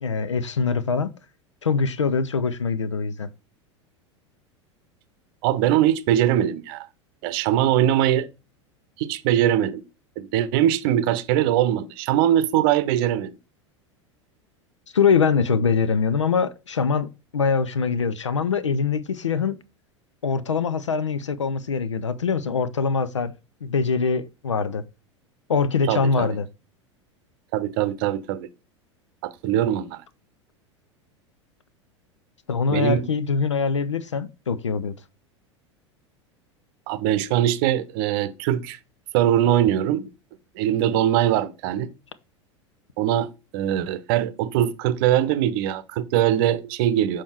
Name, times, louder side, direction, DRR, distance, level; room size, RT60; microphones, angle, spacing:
voice 1, 0.0-1.1 1.6-3.3 14.9-17.1 17.3-19.6 20.2-23.3 23.6-24.8 25.5-26.5 32.5-35.0, left 5 dB, 75° left, 0.6 m, -23 dB
voice 2, 5.4-6.9 7.2-8.3 9.0-9.8 10.2-13.4 25.9-26.4 27.5-28.5 29.2-30.0 32.7-33.1 36.9-38.8 39.1-40.1 40.6-41.9 43.0-43.3 43.5-47.2, right 11 dB, 45° right, 0.8 m, -22 dB
7.1 x 4.5 x 4.4 m
figure-of-eight pair, 80°, 16 cm